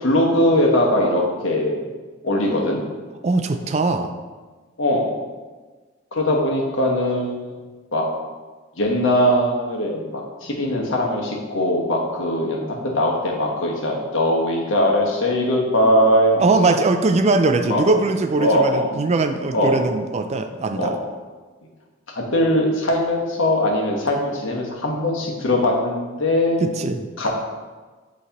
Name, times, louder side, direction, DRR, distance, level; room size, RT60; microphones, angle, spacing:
voice 1, 0.0-1.9 2.2-2.8 4.8-5.2 6.1-7.6 7.9-8.0 8.8-16.7 17.7-17.8 18.4-18.9 19.5-19.8 20.7-20.9 22.2-26.6 27.2-27.3, left 1 dB, 70° left, -1 dB, 1.2 m, -20 dB
voice 2, 3.2-4.1 16.4-20.9 26.6-27.0, right 3 dB, 35° right, 8 dB, 0.4 m, -20 dB
8.0 x 3.2 x 4.1 m, 1.3 s
head